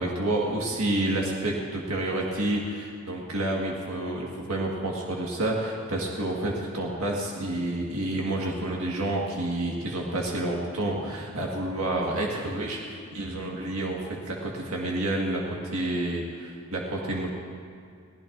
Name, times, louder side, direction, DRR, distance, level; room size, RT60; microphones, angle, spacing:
voice 1, 0.0-17.3, right 1 dB, 80° right, -2 dB, 1.7 m, -29 dB
22.5 x 16.0 x 2.6 m, 2.2 s
head